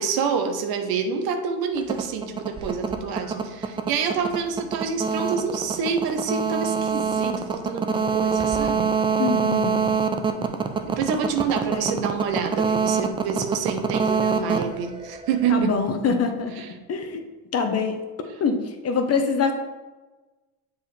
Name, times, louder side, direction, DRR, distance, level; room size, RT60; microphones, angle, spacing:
voice 1, 0.0-8.9 10.8-15.8 16.6-16.7, right 6 dB, 60° right, 6 dB, 0.9 m, -27 dB
sound 1, 1.8-15.6, right 5 dB, 15° right, 0.3 m, -25 dB
voice 2, 9.2-9.9 11.7-12.0 15.5-16.6 16.9-17.2 17.5-18.0 18.4-19.5, left 5 dB, 35° left, 6 dB, 0.8 m, -24 dB
7.1 x 4.8 x 3.2 m, 1.2 s
supercardioid pair, 95°, 41 cm